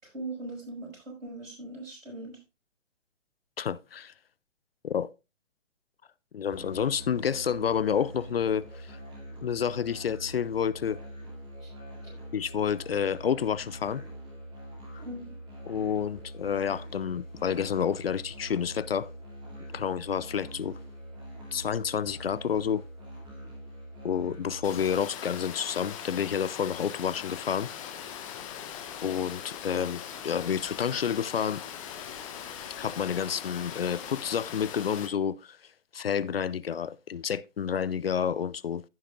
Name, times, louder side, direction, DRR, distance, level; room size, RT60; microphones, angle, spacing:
voice 1, 0.0-2.4 11.6-11.7 12.0-12.1 15.0-15.4, right 2 dB, 80° right, 6.0 m, -40 dB
voice 2, 3.6-4.1 4.8-5.1 6.3-9.0 9.4-11.0 12.3-14.0 14.9-15.0 15.7-19.1 19.7-20.8 21.5-22.8 24.0-27.7 29.0-31.6 32.8-35.6 35.9-38.8, left 8 dB, 50° left, 0.5 m, -29 dB
Musical instrument, 6.5-24.9, right 1 dB, 10° right, 2.6 m, -44 dB
Water, 24.6-35.1, left 9 dB, 25° left, 1.4 m, -40 dB
15.0 x 6.5 x 2.4 m
figure-of-eight pair, 135°, 38 cm